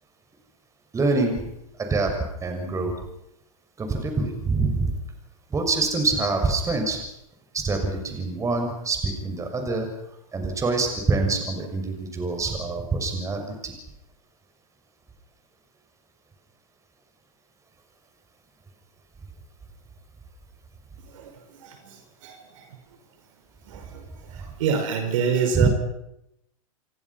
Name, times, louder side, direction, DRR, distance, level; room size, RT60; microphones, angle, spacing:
voice 1, 0.9-1.4 1.8-2.1 2.4-2.9 3.8-5.0 5.5-7.0 7.5-9.9 10.3-13.7 25.5-25.7, right 3 dB, 15° right, 4 dB, 6.4 m, -25 dB
voice 2, 24.6-25.7, right 6 dB, 60° right, 6 dB, 5.4 m, -24 dB
28.0 x 23.5 x 5.9 m, 0.84 s
hypercardioid pair, 110°, 18 cm